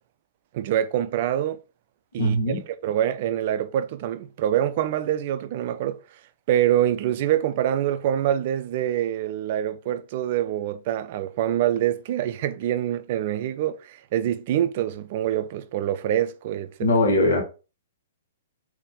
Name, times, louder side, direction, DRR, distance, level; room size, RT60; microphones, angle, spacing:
voice 1, 0.5-1.6 2.1-2.6 2.8-6.0 6.5-16.9, right 11 dB, 45° right, 0.4 m, -25 dB
voice 2, 2.2-2.6 16.8-17.4, left 1 dB, 70° left, 1.5 m, -20 dB
4.1 x 2.8 x 3.6 m
figure-of-eight pair, 115°, 0 cm